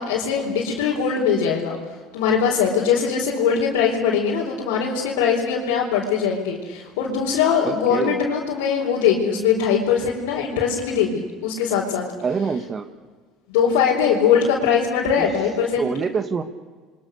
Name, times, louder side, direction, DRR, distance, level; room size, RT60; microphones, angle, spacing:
voice 1, 0.0-1.8 2.1-12.1 13.5-15.9, left 7 dB, 80° left, -4 dB, 4.5 m, -21 dB
voice 2, 7.6-8.2 12.2-12.9 15.2-15.3 15.8-16.4, right 5 dB, 35° right, 9 dB, 1.9 m, -25 dB
29.5 x 24.0 x 6.8 m, 1.5 s
supercardioid pair, 85°, 0 cm